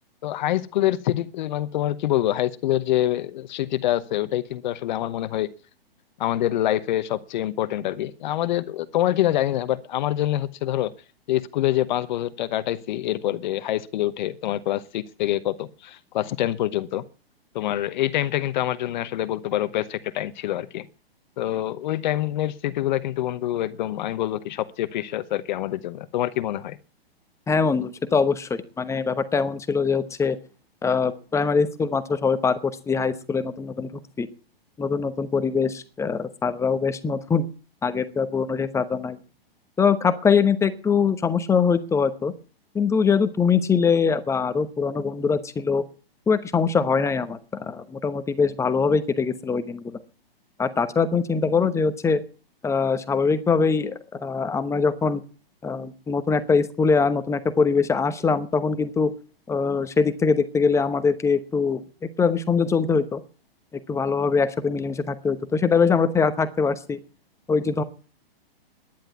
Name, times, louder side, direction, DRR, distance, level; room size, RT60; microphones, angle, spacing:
voice 1, 0.2-5.5 6.2-10.9 11.3-17.0 17.5-20.9 21.4-26.8, left 13 dB, 50° left, 1.0 m, -26 dB
voice 2, 27.5-30.4 30.8-33.9 34.2-34.3 34.8-37.5 37.8-39.2 39.8-42.3 42.7-45.8 46.3-50.0 50.6-52.2 52.6-55.2 55.6-59.1 59.5-61.8 62.2-63.2 63.9-67.0 67.5-67.8, left 5 dB, 10° left, 0.9 m, -22 dB
11.5 x 10.5 x 9.4 m
hypercardioid pair, 135°, 30 cm